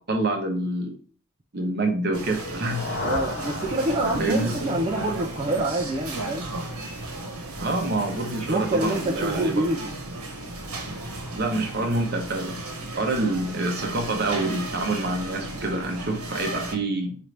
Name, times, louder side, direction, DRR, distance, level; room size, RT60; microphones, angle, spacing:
voice 1, 0.1-0.9 1.5-3.1 4.2-4.6 7.6-9.6 11.3-12.6 13.0-17.2, right 2 dB, 45° right, 0.8 m, -27 dB
sound 1, 2.1-16.7, right 2 dB, 85° right, 1.0 m, -35 dB
sound 2, 2.3-6.3, left 2 dB, 55° left, 0.6 m, -36 dB
voice 2, 3.0-6.5 8.4-9.9, right 1 dB, 25° right, 0.3 m, -26 dB
4.5 x 2.5 x 3.2 m
head